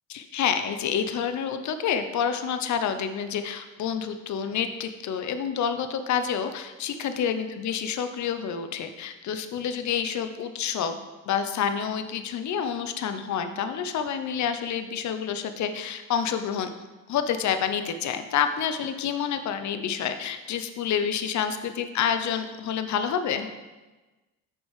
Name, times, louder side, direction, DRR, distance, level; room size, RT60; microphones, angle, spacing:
voice 1, 0.1-11.0 11.3-16.7 17.1-23.5, left 7 dB, 45° left, 9 dB, 0.7 m, -28 dB
7.0 x 5.4 x 3.2 m, 1.2 s
hypercardioid pair, 65°, 42 cm